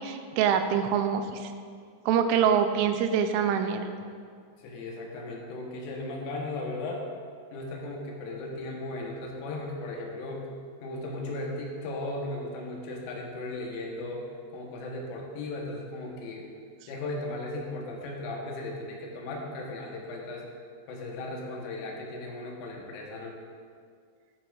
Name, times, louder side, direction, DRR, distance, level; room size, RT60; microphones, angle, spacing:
voice 1, 0.0-1.5 2.1-3.9, right 8 dB, 90° right, 7 dB, 3.1 m, -25 dB
voice 2, 4.6-7.0 7.5-10.5 10.8-16.5 16.9-20.5 20.9-23.4, left 2 dB, 85° left, -1 dB, 3.9 m, -36 dB
14.0 x 10.5 x 2.6 m, 2.1 s
omnidirectional pair, 5.5 m